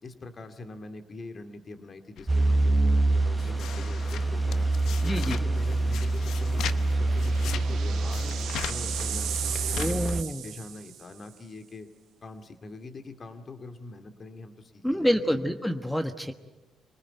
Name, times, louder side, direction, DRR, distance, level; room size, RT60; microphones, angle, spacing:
voice 1, 0.0-4.7 5.0-8.3 8.7-11.9 12.2-15.4, left 3 dB, 40° left, 7 dB, 2.4 m, -44 dB
sound 1, 2.2-10.2, left 9 dB, 75° left, 0.8 m, -40 dB
sound 2, 2.3-10.2, right 2 dB, 20° right, 0.8 m, -26 dB
sound 3, 4.6-4.7 5.0-5.1 6.5-11.2, right 10 dB, 75° right, 1.5 m, -36 dB
voice 2, 5.0-5.4 9.8-10.4 14.8-16.3, equal, 5° left, 7 dB, 1.3 m, -27 dB
25.0 x 19.0 x 9.1 m, 1.2 s
supercardioid pair, 70°, 0 cm